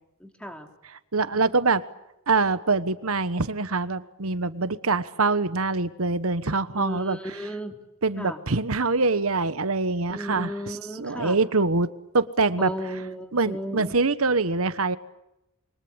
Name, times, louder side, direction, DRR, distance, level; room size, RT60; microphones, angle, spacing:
voice 1, 0.2-0.7 1.3-1.4 6.7-7.7 8.2-8.4 10.1-11.4 12.6-13.9, equal, 5° left, 5 dB, 2.9 m, -35 dB
voice 2, 0.9-1.8 2.3-7.2 8.0-12.7 13.3-15.0, right 3 dB, 70° right, 14 dB, 1.3 m, -24 dB
27.5 x 24.0 x 8.9 m, 0.88 s
head